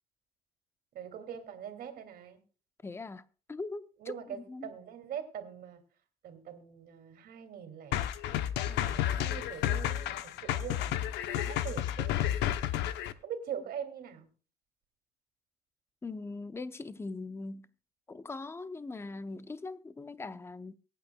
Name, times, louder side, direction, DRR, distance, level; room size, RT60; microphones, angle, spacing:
voice 1, 0.9-2.4 4.0-5.8 6.2-8.1 8.6-12.4 13.2-14.3, right 8 dB, 65° right, 2.6 m, -43 dB
voice 2, 2.8-4.2 4.5-4.7 16.0-17.7 18.1-20.8, left 3 dB, 15° left, 0.7 m, -41 dB
sound 1, 7.9-13.1, left 12 dB, 85° left, 0.8 m, -31 dB
23.5 x 8.9 x 2.3 m
cardioid pair, 110°, 17 cm